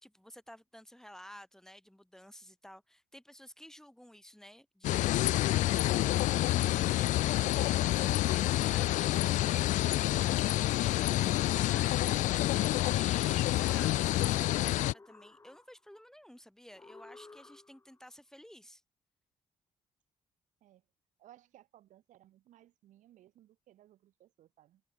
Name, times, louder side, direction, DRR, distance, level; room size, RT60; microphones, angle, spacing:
voice 1, 0.0-18.8, equal, 5° left, 1.8 m, -53 dB
sound 1, 4.8-14.9, left 15 dB, 80° left, 0.4 m, -28 dB
voice 2, 8.0-8.6 20.6-20.9 21.2-24.8, right 13 dB, 80° right, 5.1 m, -61 dB
sound 2, 14.7-16.0 16.7-18.0, left 3 dB, 20° left, 6.2 m, -56 dB
cardioid pair, 95°, 13 cm